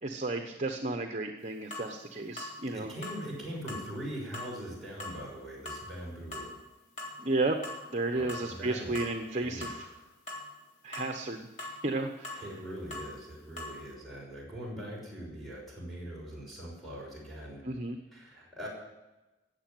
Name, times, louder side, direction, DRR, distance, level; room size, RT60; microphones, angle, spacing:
voice 1, 0.0-2.9 7.2-7.6 7.9-9.9 10.8-12.4 17.6-18.0, right 2 dB, 40° right, 5 dB, 1.0 m, -33 dB
sound 1, 1.7-1.9 2.4-2.6 3.0-3.2 3.7-3.9 4.3-4.5 5.0-5.2 5.7-5.8 6.3-6.5 7.0-7.2 7.6-7.8 8.3-8.6 9.0-9.1 9.6-9.8 10.3-10.4 10.9-11.1 11.6-11.8 12.2-12.4 12.9-13.1 13.6-13.7, left 2 dB, 40° left, 3.7 m, -40 dB
voice 2, 2.7-6.5 8.1-9.0 9.4-10.1 12.3-17.6 18.1-18.7, equal, ahead, -4 dB, 6.0 m, -42 dB
17.0 x 7.5 x 9.2 m, 1.1 s
head